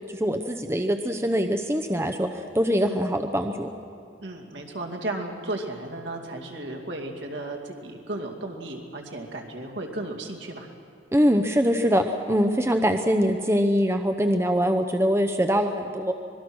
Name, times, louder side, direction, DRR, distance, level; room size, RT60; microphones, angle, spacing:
voice 1, 0.1-3.7 11.1-16.1, equal, 15° right, 6 dB, 0.7 m, -23 dB
voice 2, 4.2-10.7, right 2 dB, 70° right, 2 dB, 2.5 m, -34 dB
25.0 x 21.0 x 6.2 m, 2.4 s
head